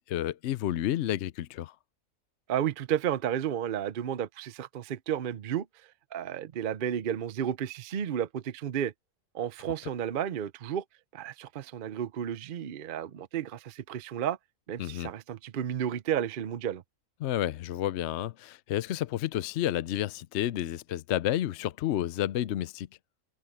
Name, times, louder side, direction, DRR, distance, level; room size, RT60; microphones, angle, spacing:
voice 1, 0.0-1.7 14.8-15.1 17.2-22.9, left 12 dB, 65° left, 0.8 m, -30 dB
voice 2, 2.5-5.7 6.1-8.9 9.3-10.8 11.1-14.4 14.7-16.8, right 9 dB, 50° right, 0.7 m, -32 dB
omnidirectional pair, 1.5 m